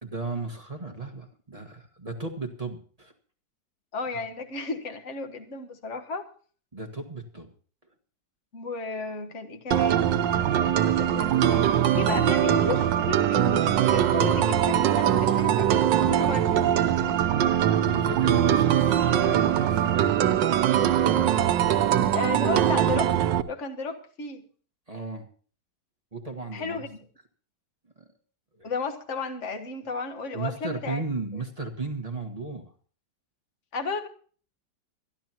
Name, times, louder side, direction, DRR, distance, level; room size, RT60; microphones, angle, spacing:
voice 1, 0.0-3.1 6.7-7.5 17.9-20.3 24.9-25.3 26.1-26.8 28.0-28.1 28.6-28.7 30.3-32.7, right 3 dB, 20° right, 2 dB, 1.5 m, -35 dB
voice 2, 3.9-6.3 8.5-16.6 22.1-24.4 26.5-27.0 28.6-31.0 33.7-34.1, left 4 dB, 45° left, 6 dB, 1.6 m, -34 dB
sound 1, 9.7-23.4, right 10 dB, 85° right, 1.5 m, -22 dB
24.5 x 11.5 x 2.9 m, 0.43 s
omnidirectional pair, 1.9 m